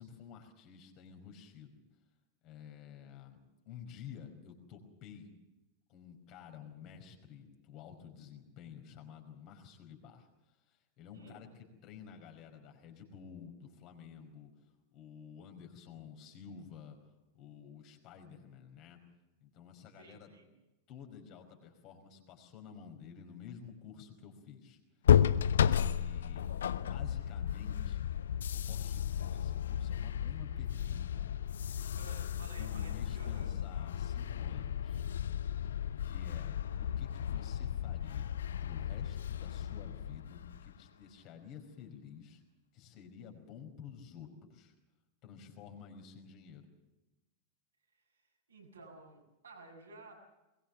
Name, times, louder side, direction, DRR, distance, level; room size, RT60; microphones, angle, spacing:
voice 1, 0.0-1.8 2.4-3.4 3.6-5.3 5.9-10.3 10.7-14.5 14.9-17.0 17.3-19.0 19.4-20.3 20.9-24.8 25.6-26.5 26.8-28.0 28.5-31.3 32.6-35.0 36.0-36.5 36.8-38.4 38.6-42.4 42.7-44.7 45.2-46.7, left 7 dB, 40° left, 4 dB, 5.1 m, -51 dB
voice 2, 11.1-11.5 20.0-20.5 32.0-33.5 48.5-50.1, right 3 dB, 70° right, 0 dB, 8.0 m, -54 dB
sound 1, 25.0-40.8, left 9 dB, 65° left, 0.8 m, -33 dB
22.0 x 22.0 x 7.3 m, 1.0 s
figure-of-eight pair, 90°, 0 cm